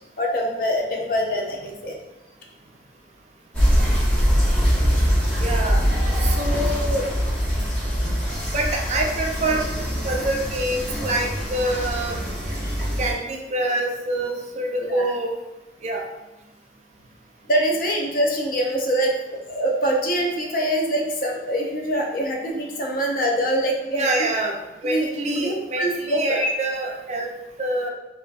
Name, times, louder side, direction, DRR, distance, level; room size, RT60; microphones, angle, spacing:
voice 1, 0.2-2.0 12.6-12.7 14.8-15.0 17.5-24.1 24.8-26.5, equal, 55° left, 0 dB, 0.5 m, -24 dB
sound 1, 3.5-13.1, equal, 10° left, 0.9 m, -23 dB
voice 2, 5.4-5.8 6.2-7.1 8.5-9.6 10.0-12.2 13.0-15.3 15.8-16.0 23.9-24.5 24.8-27.3 27.6-27.9, right 1 dB, 40° right, 1 dB, 0.4 m, -25 dB
3.4 x 2.4 x 2.3 m, 1.0 s
head